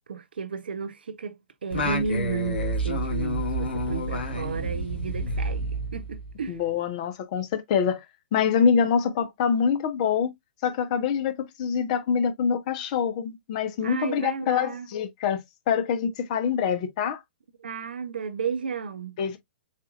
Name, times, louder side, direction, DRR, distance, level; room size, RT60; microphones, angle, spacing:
voice 1, 0.1-6.6 13.8-14.9 17.6-19.2, right 5 dB, 65° right, 0.8 m, -33 dB
Singing, 1.7-6.5, equal, 70° left, 2.5 m, -29 dB
voice 2, 6.5-8.0 8.3-10.3 10.6-15.4 15.7-17.2 19.2-19.4, left 7 dB, 40° left, 1.2 m, -25 dB
7.3 x 2.8 x 2.5 m
figure-of-eight pair, 110°, 6 cm